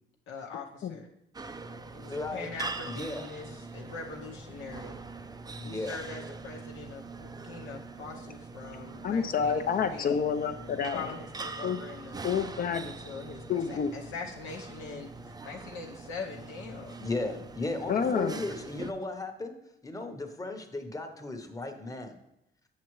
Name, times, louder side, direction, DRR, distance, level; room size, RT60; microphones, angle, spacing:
voice 1, 0.3-1.1 1.9-5.0 5.6-10.3 10.9-12.2 12.6-17.0, left 4 dB, 90° left, -1 dB, 0.8 m, -42 dB
sound 1, 1.3-18.9, right 3 dB, 20° right, 0.4 m, -43 dB
voice 2, 2.1-2.5 2.8-3.2 5.6-6.0 17.0-19.5 19.8-22.1, left 2 dB, 15° left, 5 dB, 0.8 m, -35 dB
voice 3, 9.0-11.0 11.6-11.8 12.2-12.9 13.5-13.9 17.9-18.3, left 6 dB, 45° left, 8 dB, 0.5 m, -28 dB
7.5 x 5.6 x 3.1 m, 0.81 s
cardioid pair, 90°, 20 cm